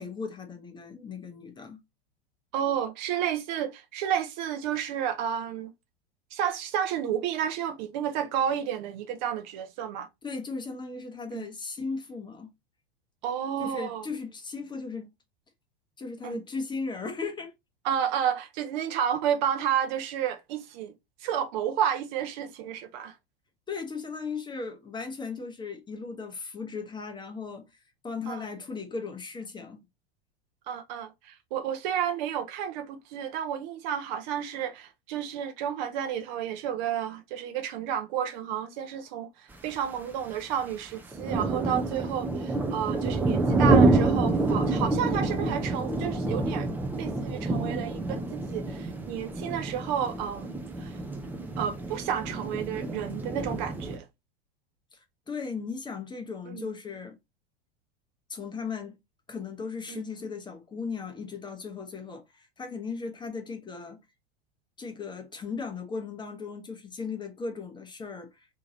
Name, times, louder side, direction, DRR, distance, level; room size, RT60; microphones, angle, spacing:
voice 1, 0.0-1.8 10.2-12.5 13.6-15.1 16.0-17.5 23.7-29.8 54.9-57.2 58.3-59.0 59.3-64.0 64.8-68.5, left 4 dB, 15° left, 0.8 m, -37 dB
voice 2, 2.5-5.7 6.3-10.1 11.3-11.4 13.2-14.1 16.2-16.4 17.8-20.9 21.2-23.1 28.3-28.5 30.7-46.7 47.0-51.0 51.6-54.0 56.5-56.7 59.9-60.0, right 9 dB, 50° right, 0.6 m, -31 dB
sound 1, 39.5-39.7 40.4-40.6 40.9-54.0, right 2 dB, 5° right, 0.4 m, -27 dB
2.8 x 2.8 x 3.7 m
figure-of-eight pair, 85°, 30 cm